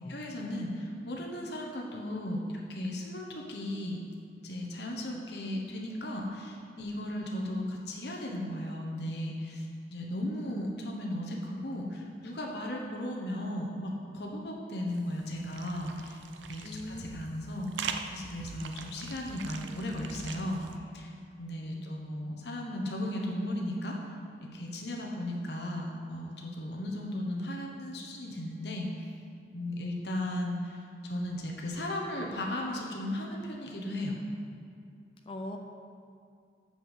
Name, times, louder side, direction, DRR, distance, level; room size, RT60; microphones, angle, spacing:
voice 1, 0.1-4.0 4.4-16.2 16.5-20.6 20.9-21.1 21.4-24.0 24.5-29.1 29.5-34.2, left 1 dB, 65° left, 0 dB, 1.1 m, -36 dB
sound 1, 14.9-20.8, right 5 dB, 90° right, 0.6 m, -42 dB
voice 2, 16.6-17.4 21.7-22.0 35.3-35.6, left 1 dB, 30° left, 3 dB, 0.5 m, -42 dB
6.8 x 6.3 x 7.2 m, 2.5 s
head